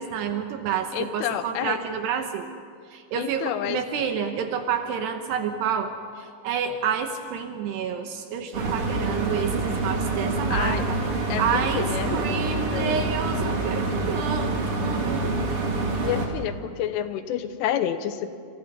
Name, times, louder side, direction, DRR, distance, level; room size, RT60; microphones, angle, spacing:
voice 1, 0.0-2.5 2.9-5.9 6.2-11.0 11.4-11.9 12.1-15.3, right 7 dB, 70° right, 6 dB, 2.7 m, -29 dB
voice 2, 0.9-1.8 3.1-3.8 10.5-10.8 11.3-13.0 16.0-18.3, left 10 dB, 80° left, 10 dB, 3.4 m, -29 dB
sound 1, 8.5-16.3, right 2 dB, 35° right, 2.6 m, -26 dB
28.0 x 27.5 x 5.5 m, 2.3 s
omnidirectional pair, 5.8 m